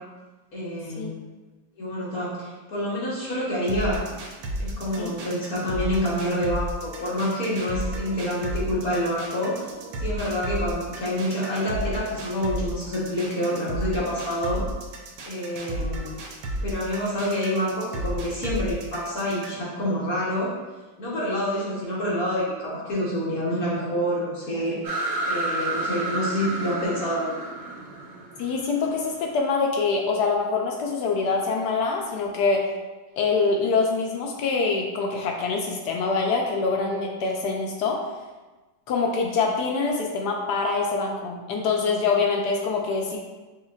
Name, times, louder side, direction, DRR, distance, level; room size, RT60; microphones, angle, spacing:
voice 1, 0.5-1.2 1.8-4.0 4.6-9.6 10.0-14.6 15.3-16.1 16.6-20.5 21.0-24.8 25.2-27.3, equal, 50° left, -7 dB, 1.3 m, -27 dB
sound 1, 3.7-19.7, right 1 dB, 75° right, 1.4 m, -33 dB
sound 2, 24.8-29.4, right 2 dB, 55° right, 0.7 m, -30 dB
voice 2, 28.4-32.7 33.2-38.0 38.9-43.2, left 4 dB, 75° left, 0 dB, 0.9 m, -25 dB
6.3 x 2.9 x 2.3 m, 1.2 s
omnidirectional pair, 2.2 m